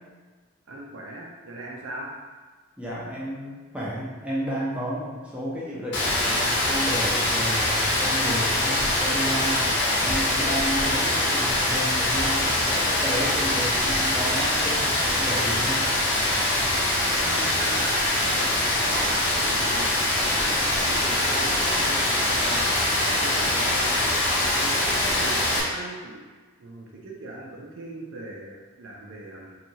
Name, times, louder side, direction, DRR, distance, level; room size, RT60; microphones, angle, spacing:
voice 1, 0.7-2.1 17.2-23.9 24.5-26.2 26.6-29.6, right 1 dB, 65° right, -2 dB, 0.5 m, -39 dB
voice 2, 2.8-9.6 10.0-15.9, equal, 5° right, -7 dB, 0.5 m, -32 dB
Rain, 5.9-25.6, left 1 dB, 55° left, 0.7 m, -23 dB
2.8 x 2.3 x 2.7 m, 1.4 s
head